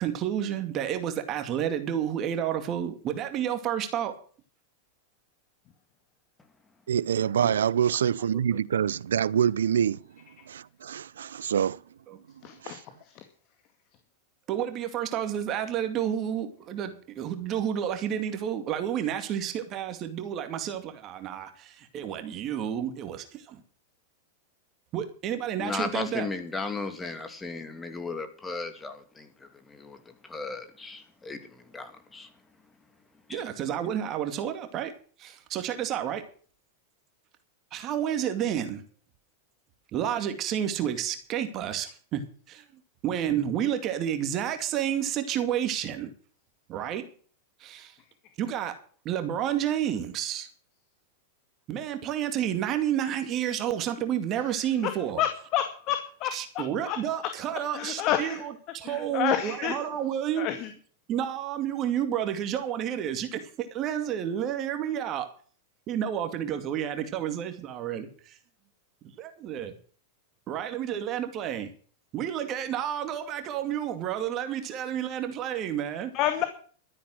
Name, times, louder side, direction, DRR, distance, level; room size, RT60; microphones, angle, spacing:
voice 1, 0.0-4.1 7.4-7.6 12.1-12.2 14.5-23.6 24.9-26.3 33.3-34.9 35.2-36.2 37.7-38.8 39.9-42.6 43.0-46.1 46.7-47.0 47.6-48.0 48.4-48.7 49.0-50.5 51.7-55.2 56.3-60.5 61.1-65.3 65.9-68.4 69.2-69.7 70.5-71.7 72.1-76.1, right 10 dB, 40° right, 2.3 m, -30 dB
voice 2, 6.9-10.0 10.5-11.8 12.6-12.8, right 8 dB, 80° right, 0.6 m, -26 dB
voice 3, 12.4-13.2 54.5-57.0 57.7-58.4 58.8-59.7 60.4-60.7 76.1-76.4, left 11 dB, 45° left, 2.1 m, -30 dB
voice 4, 25.6-30.0 30.2-31.4 31.7-32.3 33.3-33.4, left 3 dB, 15° left, 2.7 m, -35 dB
13.0 x 9.9 x 6.3 m
hypercardioid pair, 105°, 0 cm